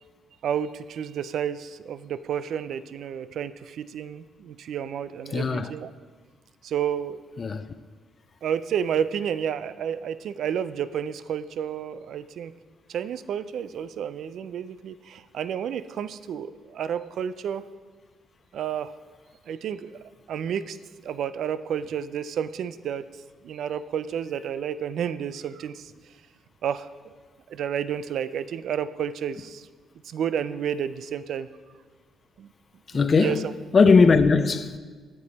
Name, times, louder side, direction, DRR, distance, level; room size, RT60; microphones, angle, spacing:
voice 1, 0.4-5.9 6.6-7.2 8.4-12.5 12.9-17.6 18.5-18.9 19.5-19.9 20.3-20.8 21.0-23.1 23.4-25.9 26.6-27.1 27.5-29.7 30.1-31.5 32.4-32.5 33.2-33.4, right 8 dB, 70° right, 0.3 m, -30 dB
voice 2, 5.3-5.7 7.4-7.7 32.9-33.5 33.7-34.8, left 4 dB, 40° left, 0.4 m, -19 dB
8.3 x 6.7 x 4.0 m
cardioid pair, 90°, 0 cm